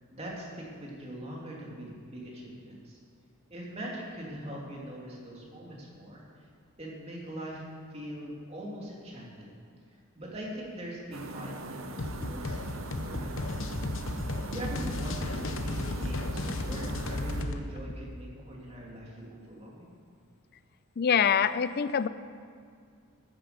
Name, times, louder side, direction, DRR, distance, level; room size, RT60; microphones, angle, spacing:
voice 1, 0.1-3.0 3.5-6.2 6.8-7.6 7.9-9.5 9.9-13.8 14.4-19.9, right 1 dB, 30° right, -3 dB, 2.7 m, -42 dB
sound 1, 11.1-17.4, right 2 dB, 65° right, 0.9 m, -42 dB
sound 2, 12.0-17.6, left 2 dB, 60° left, 0.9 m, -34 dB
voice 2, 21.0-22.1, left 7 dB, 45° left, 14 dB, 0.4 m, -25 dB
13.5 x 9.8 x 6.8 m, 2.2 s
head